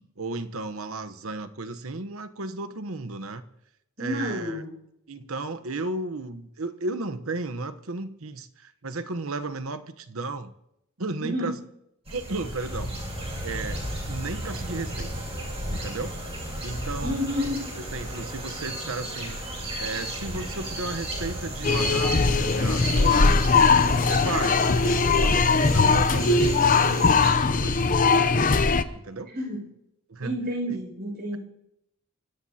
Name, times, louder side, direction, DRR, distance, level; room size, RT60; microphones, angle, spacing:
voice 1, 0.2-3.4 4.0-4.6 5.1-10.5 11.0-11.5 12.1-12.9 13.4-13.8 14.1-15.1 15.7-16.2 16.6-17.3 17.8-19.4 19.8-23.4 24.1-28.3 28.9-29.3 30.1-30.3, right 3 dB, 75° right, 11 dB, 1.0 m, -34 dB
voice 2, 4.0-4.7 11.2-11.5 17.0-17.7 29.3-29.7 30.2-31.4, equal, 50° right, 2 dB, 6.1 m, -30 dB
sound 1, 12.1-27.3, right 1 dB, 30° right, 7.4 m, -34 dB
sound 2, 21.6-28.8, left 4 dB, 40° left, 0.7 m, -20 dB
25.0 x 17.5 x 2.9 m, 0.81 s
head